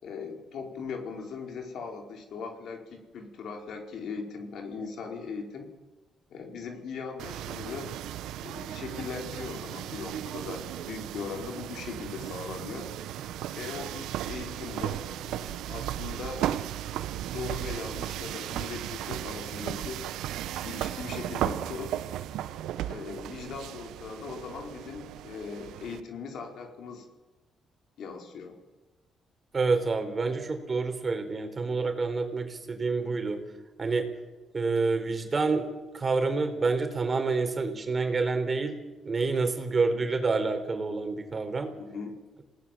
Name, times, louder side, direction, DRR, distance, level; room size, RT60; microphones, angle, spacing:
voice 1, 0.0-5.7 6.3-7.9 8.4-12.9 13.5-16.5 17.2-20.1 20.6-22.0 22.8-27.0 28.0-28.6 41.8-42.2, left 5 dB, 70° left, 3 dB, 4.6 m, -39 dB
sound 1, 7.2-26.0, right 12 dB, 85° right, 1.0 m, -36 dB
voice 2, 29.5-33.4 33.8-34.1 34.5-35.7 35.9-38.8 39.0-41.7, right 4 dB, 35° right, 6 dB, 4.3 m, -28 dB
27.5 x 18.5 x 7.7 m, 1.2 s
cardioid pair, 90°, 0 cm